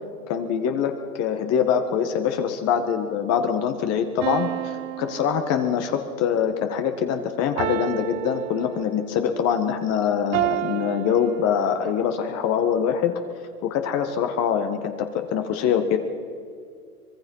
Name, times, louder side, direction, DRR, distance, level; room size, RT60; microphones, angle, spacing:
voice 1, 0.3-13.1 13.6-16.0, left 8 dB, 35° left, 7 dB, 1.7 m, -24 dB
sound 1, 4.2-6.1 7.6-9.2 10.3-12.0, right 15 dB, 60° right, 0.9 m, -31 dB
25.0 x 20.5 x 5.6 m, 2.3 s
hypercardioid pair, 130°, 43 cm